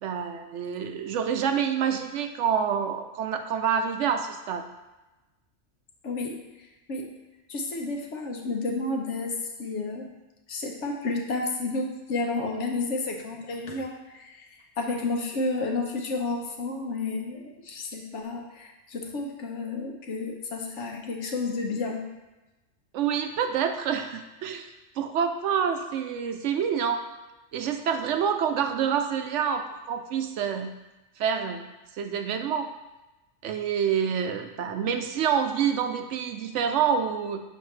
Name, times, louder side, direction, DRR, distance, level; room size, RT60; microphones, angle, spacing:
voice 1, 0.0-4.6 22.9-24.7 25.0-27.0 27.5-30.7 31.2-31.6 32.0-32.7 33.4-37.4, right 7 dB, 75° right, 6 dB, 0.9 m, -27 dB
voice 2, 6.0-7.1 7.5-9.3 9.6-10.1 10.5-14.5 14.8-22.0, left 3 dB, 70° left, 2 dB, 1.1 m, -31 dB
6.5 x 4.9 x 3.2 m, 1.1 s
omnidirectional pair, 1.3 m